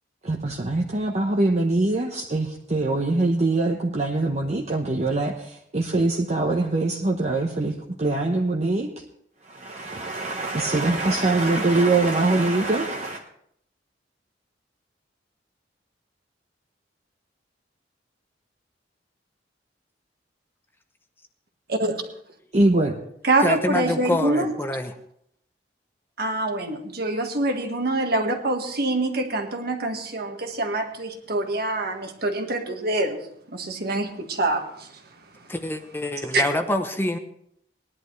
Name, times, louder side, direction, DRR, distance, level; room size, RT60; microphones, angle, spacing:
voice 1, 0.2-9.0 9.4-13.2 22.5-22.9, right 2 dB, 40° right, 1 dB, 1.0 m, -23 dB
voice 2, 21.7-22.0 23.2-24.5 26.2-33.2 33.5-35.0 36.3-36.4, right 2 dB, 55° right, 4 dB, 1.6 m, -25 dB
voice 3, 23.4-24.9 35.5-37.2, left 1 dB, 10° left, 6 dB, 0.8 m, -26 dB
19.0 x 11.0 x 3.2 m, 0.71 s
head